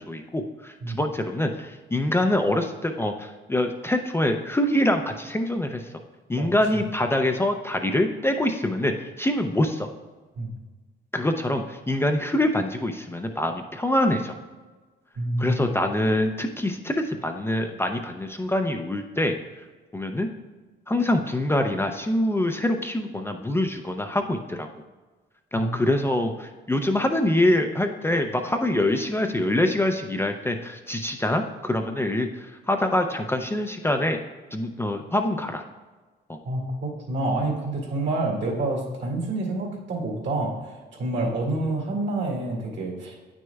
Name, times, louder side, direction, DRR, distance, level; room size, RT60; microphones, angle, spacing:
voice 1, 0.0-5.8 6.3-9.9 11.1-14.3 15.4-19.3 19.9-20.3 20.9-24.7 25.5-34.2 34.5-35.6 36.3-36.4, left 1 dB, 10° left, 4 dB, 0.5 m, -25 dB
voice 2, 6.3-6.8 10.4-10.5 15.2-15.8 25.6-25.7 36.4-43.2, right 2 dB, 70° right, 0 dB, 2.1 m, -28 dB
9.1 x 6.2 x 2.3 m, 1.3 s
cardioid pair, 90°, 20 cm